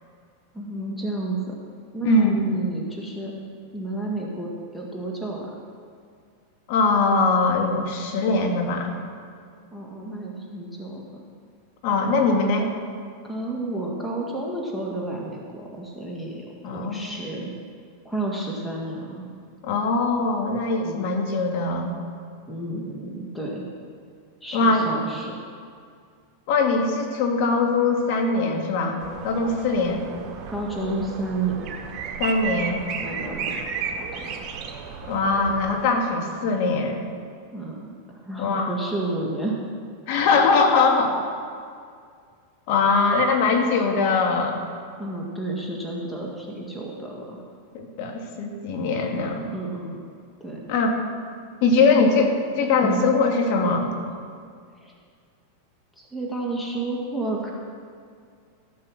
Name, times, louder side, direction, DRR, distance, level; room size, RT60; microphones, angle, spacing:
voice 1, 0.5-1.6 1.9-3.3 3.7-5.6 9.7-11.2 13.2-17.5 18.0-19.3 20.8-21.0 22.5-23.6 24.4-25.3 30.5-31.7 33.0-33.6 33.9-34.3 37.5-39.6 45.0-47.5 49.5-50.0 50.4-50.7 51.7-52.0 52.8-53.0 54.8-54.9 56.0-57.5, right 2 dB, 5° left, -2 dB, 2.0 m, -31 dB
voice 2, 2.0-2.5 6.7-9.0 11.8-12.7 16.6-17.2 19.6-21.9 24.5-24.9 26.5-30.0 32.2-32.8 35.1-37.1 38.4-38.7 40.1-41.2 42.7-44.6 47.7-49.5 50.7-51.0 51.6-52.3 52.6-53.9, left 3 dB, 60° left, 2 dB, 2.1 m, -22 dB
sound 1, 29.0-35.8, right 6 dB, 40° right, 1.6 m, -33 dB
14.5 x 7.6 x 6.4 m, 2.2 s
hypercardioid pair, 115°, 0 cm